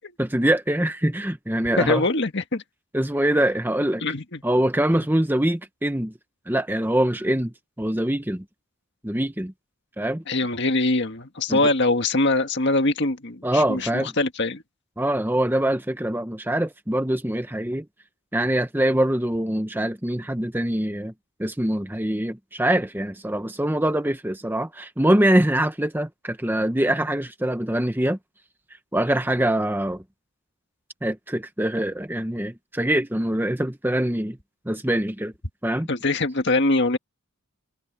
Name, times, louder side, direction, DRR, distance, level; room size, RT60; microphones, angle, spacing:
voice 1, 0.2-2.0 2.9-4.0 4.4-6.1 6.5-8.4 9.0-9.5 10.0-10.2 11.5-11.6 13.4-14.1 15.0-17.9 18.3-21.1 21.4-28.2 28.9-30.0 31.0-34.4 34.7-35.3 35.6-35.9, right 1 dB, 10° right, 0.9 m, -24 dB
voice 2, 1.8-2.6 4.0-4.4 10.3-13.9 14.2-14.6 35.9-37.0, left 2 dB, 50° left, 1.8 m, -23 dB
head